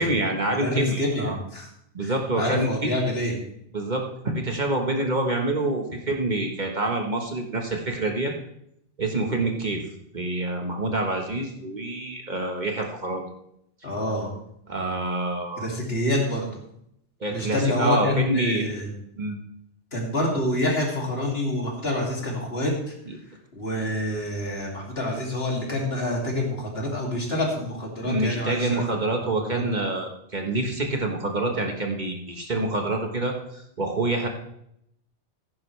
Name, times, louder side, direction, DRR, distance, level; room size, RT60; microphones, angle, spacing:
voice 1, 0.0-1.4 1.9-2.7 3.7-8.3 9.0-9.8 10.1-13.3 14.7-15.7 17.2-18.7 19.2-19.4 28.0-34.3, right 2 dB, 40° right, 2 dB, 1.4 m, -27 dB
voice 2, 0.6-1.7 2.0-3.3 13.8-14.3 15.6-16.5 17.3-18.9 19.9-22.9 23.5-29.1 29.5-29.6, left 1 dB, 60° left, -1 dB, 2.9 m, -27 dB
14.5 x 11.0 x 3.3 m, 0.75 s
omnidirectional pair, 1.2 m